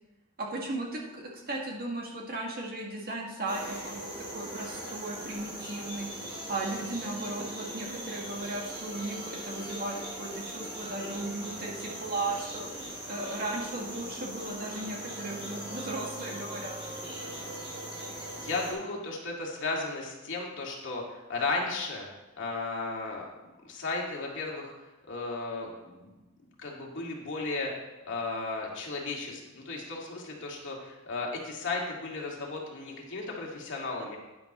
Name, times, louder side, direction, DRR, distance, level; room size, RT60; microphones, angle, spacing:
voice 1, 0.4-16.8, right 2 dB, 45° right, -1 dB, 2.0 m, -36 dB
sound 1, 3.5-18.7, right 1 dB, 25° right, 2.5 m, -40 dB
voice 2, 18.4-22.1 22.4-23.2 23.6-24.7 25.1-26.1 26.6-27.7 28.1-34.2, left 3 dB, 60° left, -2 dB, 2.2 m, -35 dB
11.0 x 10.5 x 3.1 m, 1.1 s
head